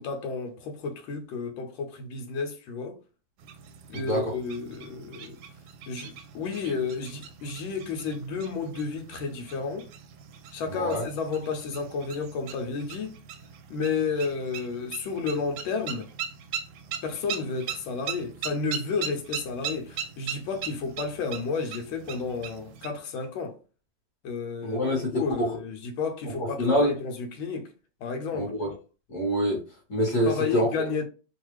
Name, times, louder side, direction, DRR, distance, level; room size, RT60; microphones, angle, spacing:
voice 1, 0.0-3.0 3.9-5.4 5.9-9.9 10.5-13.2 13.7-16.1 17.0-23.6 24.2-24.8 25.1-27.7 28.0-28.5 30.2-31.0, left 5 dB, 85° left, 1.4 m, -31 dB
sound 1, 3.4-22.9, right 8 dB, 70° right, 1.0 m, -40 dB
voice 2, 3.9-4.3 10.6-11.1 24.6-25.6 26.3-26.9 28.3-28.7 29.1-29.6 29.9-30.7, equal, 45° left, 1.3 m, -26 dB
3.3 x 2.3 x 3.1 m
omnidirectional pair, 2.1 m